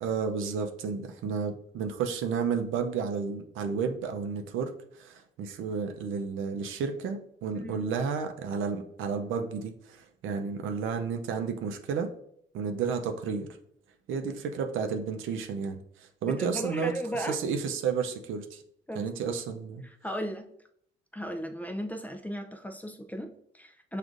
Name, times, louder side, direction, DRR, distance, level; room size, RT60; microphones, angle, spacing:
voice 1, 0.0-12.1 12.5-13.5 14.1-16.9 17.3-18.6 18.9-19.9, right 6 dB, 80° right, 6 dB, 0.5 m, -32 dB
voice 2, 7.5-7.8 16.2-17.4 18.9-19.4 19.8-20.5 21.1-24.0, equal, 10° left, 5 dB, 0.4 m, -36 dB
6.3 x 2.4 x 2.5 m, 0.70 s
cardioid pair, 90°, 20 cm